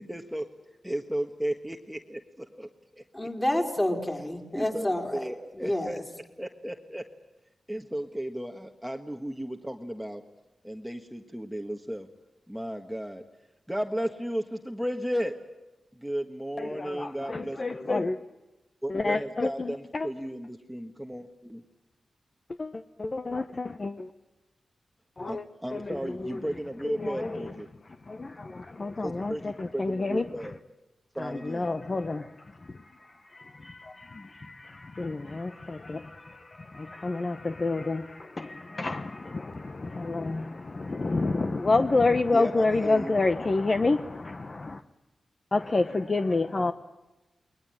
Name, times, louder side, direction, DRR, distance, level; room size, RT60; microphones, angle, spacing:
voice 1, 0.0-0.4 0.8-2.7 3.0-3.1 4.5-6.0 6.4-7.0 7.7-10.2 10.6-12.1 12.5-13.2 13.7-15.3 15.9-18.0 18.8-21.6 25.3-27.7 29.0-30.6 31.1-31.7 42.3-43.2, equal, 5° right, 1.5 m, -34 dB
voice 2, 3.1-5.9, left 1 dB, 15° left, 4.7 m, -29 dB
voice 3, 16.6-18.2 18.9-20.1 22.6-24.1 25.2-25.4 25.7-26.4 26.8-27.5 28.1-30.2 31.2-44.8 45.5-46.7, left 3 dB, 35° left, 1.0 m, -29 dB
29.5 x 21.5 x 8.9 m
wide cardioid pair, 125°, 0 cm